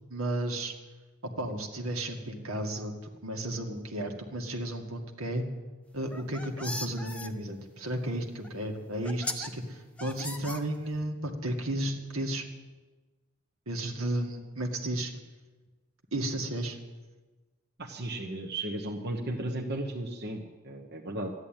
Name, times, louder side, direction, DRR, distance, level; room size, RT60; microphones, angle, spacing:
voice 1, 0.1-0.8 1.2-2.9 3.2-5.4 5.9-12.5 13.7-15.1 16.1-16.8, right 1 dB, 75° right, 3 dB, 2.0 m, -33 dB
sound 1, 6.0-7.3 8.4-8.5 9.0-9.5 10.0-11.1, left 1 dB, 5° left, 0.9 m, -38 dB
voice 2, 17.8-21.3, right 1 dB, 50° right, 1 dB, 1.2 m, -35 dB
13.5 x 11.0 x 9.1 m, 1.3 s
head